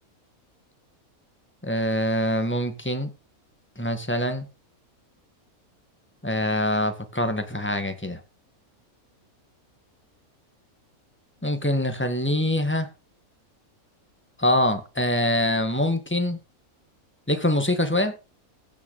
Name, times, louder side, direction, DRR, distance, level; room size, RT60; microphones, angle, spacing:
voice 1, 1.6-3.1 3.8-4.4 6.2-8.2 11.4-12.9 14.4-16.4 17.3-18.1, left 1 dB, 10° left, 1.7 m, -24 dB
15.5 x 6.6 x 5.6 m
omnidirectional pair, 1.5 m